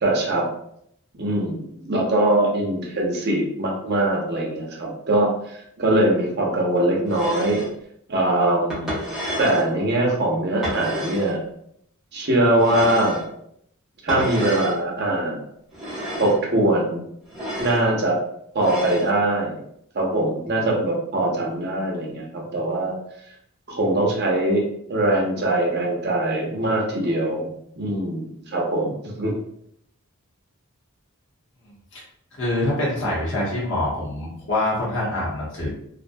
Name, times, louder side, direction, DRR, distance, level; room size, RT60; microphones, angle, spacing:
voice 1, 0.0-0.5 1.2-7.7 8.1-8.9 9.4-11.4 12.1-13.2 14.0-15.4 16.1-17.0 17.6-18.2 18.5-19.6 19.9-22.9 23.7-24.6 24.9-27.5 27.8-29.3, right 1 dB, 50° right, -1 dB, 0.6 m, -22 dB
sound 1, 7.1-7.7 8.7-9.7 10.6-11.3 12.6-13.3 14.1-14.8 15.7-16.4 17.3-17.8 18.6-19.1, equal, ahead, 0.7 m, -30 dB
voice 2, 32.4-35.7, left 1 dB, 55° left, -5 dB, 0.9 m, -25 dB
2.5 x 2.2 x 2.5 m, 0.72 s
head